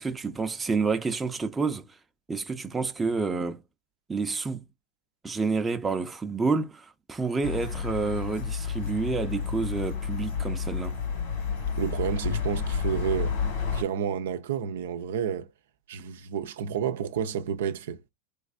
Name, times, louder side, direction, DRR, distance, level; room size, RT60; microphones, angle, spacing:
voice 1, 0.0-1.8 2.3-3.6 4.1-4.6 5.2-10.9, right 4 dB, 15° right, 0.6 m, -29 dB
sound 1, 7.4-13.8, left 6 dB, 75° left, 1.9 m, -30 dB
voice 2, 11.8-13.4 13.7-15.5 15.9-18.0, right 8 dB, 80° right, 0.5 m, -30 dB
3.2 x 3.2 x 2.5 m
hypercardioid pair, 115°, 0 cm